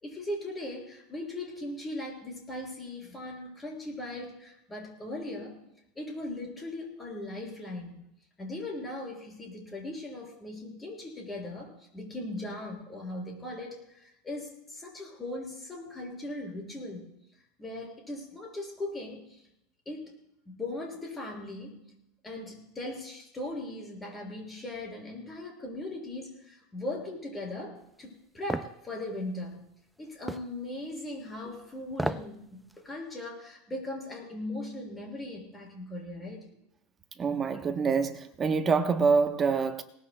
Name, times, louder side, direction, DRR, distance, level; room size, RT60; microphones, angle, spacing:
voice 1, 0.0-5.6 6.0-7.9 8.4-17.0 17.6-19.4 19.9-20.1 20.5-21.9 22.2-29.7 30.0-36.5, left 1 dB, 15° left, 5.7 m, -39 dB
sound 1, 28.5-28.7 30.3-30.5 31.9-32.3 32.7-32.8, right 1 dB, 5° right, 0.4 m, -31 dB
voice 2, 37.2-39.8, right 5 dB, 25° right, 0.9 m, -26 dB
21.5 x 19.0 x 2.2 m
supercardioid pair, 140°, 0 cm